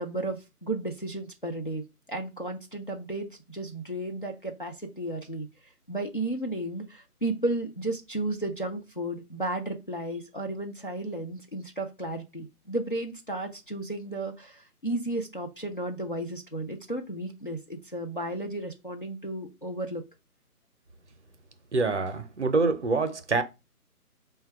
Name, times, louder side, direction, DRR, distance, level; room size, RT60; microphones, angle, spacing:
voice 1, 0.0-1.8 2.1-5.5 5.9-20.0, right 2 dB, 35° left, 0.4 m, -33 dB
voice 2, 21.7-23.4, right 3 dB, 50° right, 0.6 m, -25 dB
3.8 x 2.2 x 4.5 m
figure-of-eight pair, 155°, 46 cm